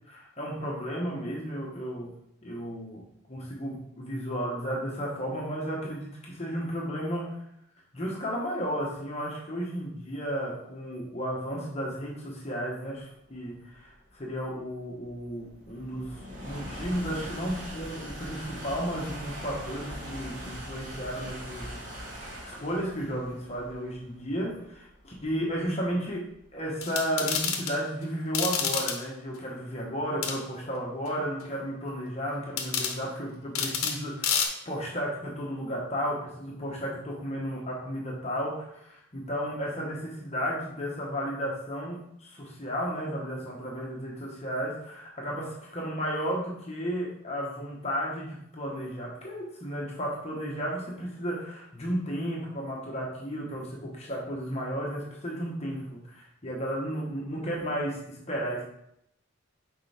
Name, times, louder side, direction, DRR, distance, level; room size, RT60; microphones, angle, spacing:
voice 1, 0.1-3.0 3.3-7.4 7.9-58.6, equal, 30° left, -3 dB, 1.1 m, -33 dB
sound 1, 13.3-26.6, equal, 35° right, 1.5 m, -42 dB
sound 2, 26.8-27.7 28.3-29.0 30.2-30.4 32.6-33.0 33.5-34.0 34.2-34.4, left 7 dB, 85° left, 0.9 m, -28 dB
6.6 x 4.7 x 3.4 m, 0.75 s
head